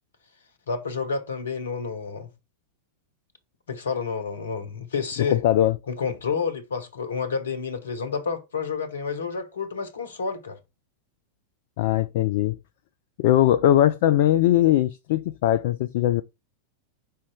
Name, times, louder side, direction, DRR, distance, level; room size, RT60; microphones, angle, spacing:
voice 1, 0.7-2.3 3.7-5.4 5.9-10.6, left 5 dB, 70° left, 1.2 m, -29 dB
voice 2, 5.3-5.8 11.8-12.6 13.2-16.2, left 12 dB, 50° left, 0.4 m, -20 dB
5.6 x 4.2 x 4.6 m
figure-of-eight pair, 90°, 0 cm